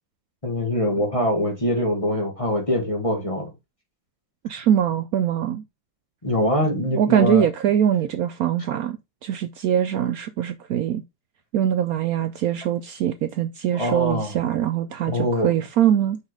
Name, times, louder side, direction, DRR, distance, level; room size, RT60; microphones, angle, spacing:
voice 1, 0.4-3.5 6.2-7.5 13.7-14.3 15.1-15.5, left 1 dB, 20° left, 1.8 m, -23 dB
voice 2, 4.4-5.6 7.0-9.0 9.2-11.0 11.5-16.2, right 10 dB, 85° right, 0.8 m, -22 dB
5.7 x 4.5 x 4.7 m
omnidirectional pair, 2.1 m